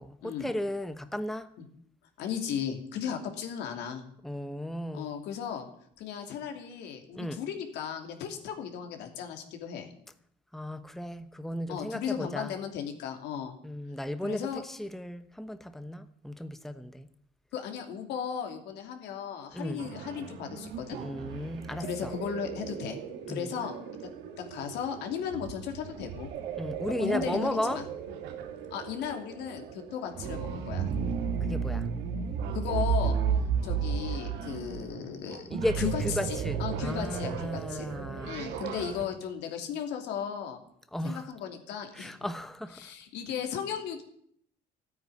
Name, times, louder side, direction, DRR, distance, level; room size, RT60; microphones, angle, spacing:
voice 1, 0.0-1.5 4.2-5.1 7.1-7.4 10.5-12.5 13.6-17.1 19.5-19.8 21.0-22.1 23.3-23.5 26.5-27.9 31.5-31.9 35.5-38.3 40.9-41.3 41.9-42.9, left 1 dB, ahead, 0.9 m, -35 dB
voice 2, 2.2-4.0 4.9-5.7 6.0-9.9 11.7-13.5 14.2-14.6 17.5-21.0 21.8-23.0 23.3-24.1 24.4-26.3 27.0-27.8 28.7-30.9 32.5-33.2 33.6-35.5 35.8-37.9 38.2-40.6 41.0-42.2 42.7-44.0, left 8 dB, 85° left, 2.9 m, -36 dB
sound 1, 19.8-39.0, right 6 dB, 90° right, 2.3 m, -34 dB
13.5 x 9.5 x 9.8 m
cardioid pair, 110°, 17 cm